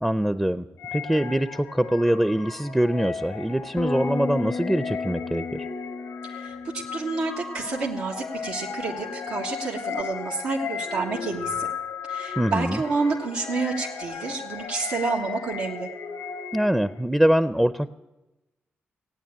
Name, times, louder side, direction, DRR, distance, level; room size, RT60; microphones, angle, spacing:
voice 1, 0.0-5.7 12.4-12.8 16.5-17.9, right 1 dB, 5° right, 12 dB, 0.6 m, -23 dB
sound 1, 0.8-17.0, left 6 dB, 90° left, 1.4 m, -35 dB
Bass guitar, 3.8-10.0, left 4 dB, 40° left, 0.6 m, -35 dB
voice 2, 6.3-11.7 12.1-15.9, right 4 dB, 85° right, -5 dB, 1.5 m, -29 dB
16.0 x 8.9 x 8.7 m, 1.0 s
supercardioid pair, 45°, 5 cm